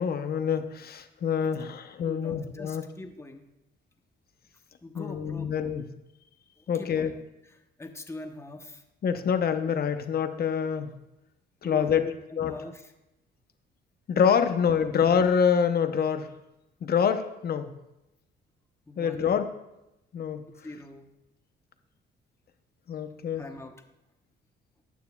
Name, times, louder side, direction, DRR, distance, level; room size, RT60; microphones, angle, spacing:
voice 1, 0.0-2.9 4.9-5.9 6.7-7.1 9.0-11.0 11.6-12.0 12.4-12.6 14.1-16.3 16.8-17.7 19.0-19.5 20.1-20.5 22.9-23.4, left 7 dB, 50° left, 8 dB, 0.8 m, -26 dB
voice 2, 2.1-3.4 4.8-5.7 6.6-7.2 7.8-8.8 11.6-12.9 14.8-14.9 18.9-19.4 20.6-21.1 23.4-23.7, left 2 dB, 15° left, 5 dB, 0.9 m, -42 dB
14.0 x 9.3 x 2.3 m, 0.91 s
cardioid pair, 90°, 20 cm